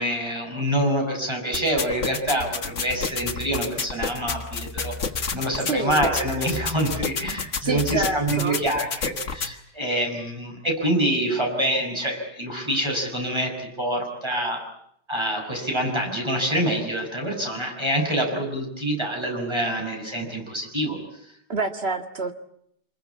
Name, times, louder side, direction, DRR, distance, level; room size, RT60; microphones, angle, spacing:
voice 1, 0.0-5.0 5.3-14.6 15.1-21.0, right 1 dB, 15° right, 2 dB, 6.4 m, -26 dB
sound 1, 1.5-9.5, left 5 dB, 45° left, 1.7 m, -30 dB
voice 2, 5.7-6.1 7.6-8.6 21.5-22.3, right 3 dB, 35° right, 7 dB, 1.9 m, -27 dB
26.5 x 21.5 x 8.5 m, 0.71 s
omnidirectional pair, 1.8 m